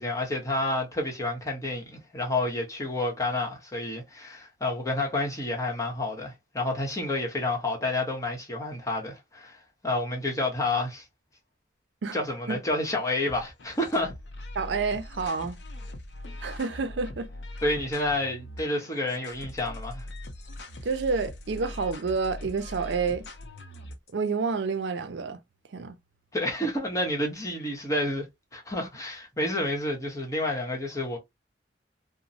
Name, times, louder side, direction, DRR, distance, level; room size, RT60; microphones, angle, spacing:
voice 1, 0.0-11.0 12.1-14.1 17.6-20.1 26.3-28.3 28.5-31.2, left 2 dB, 20° left, 0.9 m, -29 dB
sound 1, 13.3-24.1, left 1 dB, 75° left, 0.6 m, -41 dB
voice 2, 14.6-15.6 16.4-17.3 17.6-17.7 20.8-23.3 24.1-25.4 25.7-25.9, right 4 dB, 75° right, 0.4 m, -29 dB
2.9 x 2.0 x 2.6 m
head